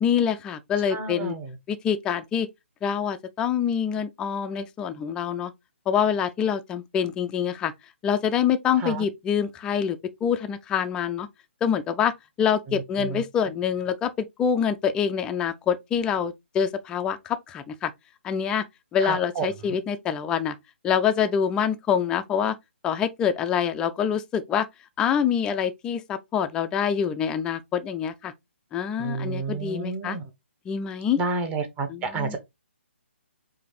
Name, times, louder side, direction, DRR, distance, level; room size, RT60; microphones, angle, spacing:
voice 1, 0.0-1.3 1.7-2.5 2.8-5.5 5.9-7.7 8.0-11.3 11.6-17.9 18.2-18.6 18.9-20.6 20.8-22.6 22.8-24.7 25.0-28.3 28.7-30.2 30.7-31.2 31.9-32.4, left 8 dB, 10° left, 0.3 m, -25 dB
voice 2, 0.9-1.5 8.8-9.0 12.7-13.2 19.0-19.8 29.0-30.2 31.2-32.4, right 4 dB, 15° right, 0.8 m, -30 dB
4.9 x 2.6 x 3.0 m
figure-of-eight pair, 135°, 7 cm